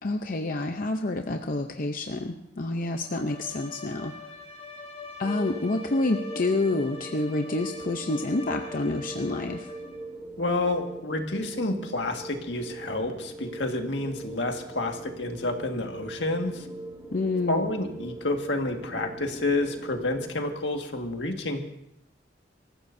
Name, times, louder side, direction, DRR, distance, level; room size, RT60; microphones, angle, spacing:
voice 1, 0.0-4.1 5.2-9.7 17.1-17.7, left 2 dB, 50° left, 5 dB, 0.7 m, -28 dB
Bowed string instrument, 3.0-10.1, left 4 dB, 35° left, 1.8 m, -44 dB
sound 1, 5.2-20.3, right 2 dB, 20° right, 2.0 m, -41 dB
voice 2, 10.4-16.7 17.5-21.6, left 2 dB, 75° left, 3 dB, 1.8 m, -29 dB
25.0 x 15.0 x 2.7 m, 0.80 s
head